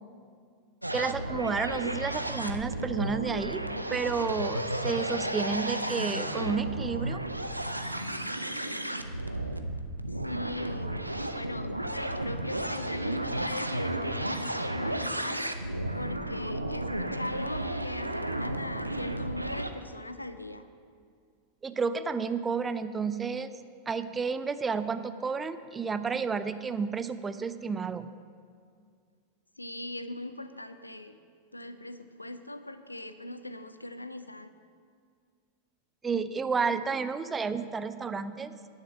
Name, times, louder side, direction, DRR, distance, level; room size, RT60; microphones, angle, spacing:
sound 1, 0.8-19.7, right 1 dB, 85° right, 0.5 m, -33 dB
voice 1, 0.9-7.2 21.6-23.5 23.9-28.1 36.0-38.6, right 5 dB, 15° right, 12 dB, 0.5 m, -31 dB
voice 2, 10.2-10.9 11.3-15.5 15.9-20.7 29.6-31.2 31.5-34.5, left 1 dB, 85° left, 11 dB, 0.5 m, -40 dB
10.0 x 6.5 x 7.3 m, 2.1 s
figure-of-eight pair, 90°, 0 cm